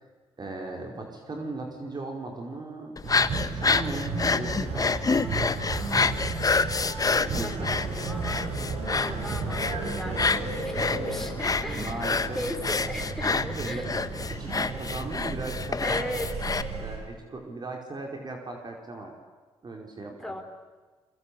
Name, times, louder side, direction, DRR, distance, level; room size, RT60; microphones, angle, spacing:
voice 1, 0.4-3.0 3.5-5.3 7.0-7.7 11.7-12.4 13.3-14.0 14.3-16.1 16.8-19.1 19.6-20.3, right 2 dB, 40° right, 2 dB, 4.9 m, -37 dB
sound 1, 3.0-16.6, left 4 dB, 35° left, 1.3 m, -28 dB
sound 2, 3.0-17.0, right 4 dB, 80° right, 7.3 m, -34 dB
voice 2, 7.4-12.1 12.3-13.9 15.8-16.3 20.0-20.4, equal, 5° left, 3 dB, 4.6 m, -37 dB
29.0 x 23.0 x 8.7 m, 1.4 s
cardioid pair, 65°, 11 cm